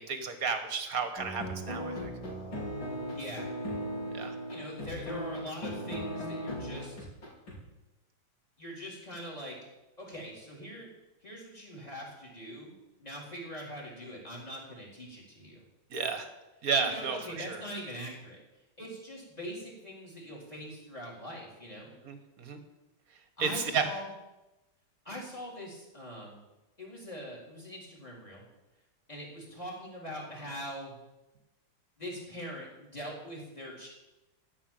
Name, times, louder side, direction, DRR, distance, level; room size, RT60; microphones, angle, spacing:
voice 1, 0.0-2.1 4.1-4.4 15.9-16.3 16.6-17.6 22.1-22.6 23.4-23.9, right 5 dB, 45° right, 8 dB, 1.7 m, -32 dB
sound 1, 1.2-7.6, equal, 65° left, 4.4 m, -37 dB
voice 2, 3.1-3.4 4.5-7.0 8.6-9.6 10.0-10.9 11.2-12.7 13.0-15.6 16.8-18.4 18.8-21.9 23.4-24.1 25.0-26.4 26.8-28.4 29.1-30.9 32.0-33.9, equal, 15° left, -2 dB, 4.1 m, -42 dB
14.5 x 5.8 x 9.1 m, 1.0 s
omnidirectional pair, 2.3 m